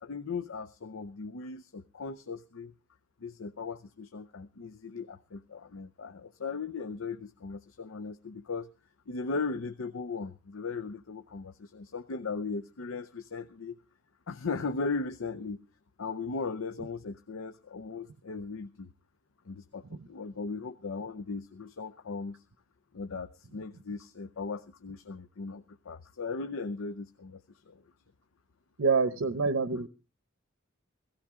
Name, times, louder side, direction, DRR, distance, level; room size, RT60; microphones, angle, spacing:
voice 1, 0.0-2.7 3.2-8.7 9.1-13.8 14.3-15.6 16.0-18.9 19.5-22.4 22.9-27.8, left 4 dB, 85° left, 10 dB, 0.6 m, -38 dB
voice 2, 28.8-29.9, right 4 dB, 85° right, 13 dB, 0.8 m, -26 dB
17.0 x 15.0 x 3.6 m, 0.31 s
head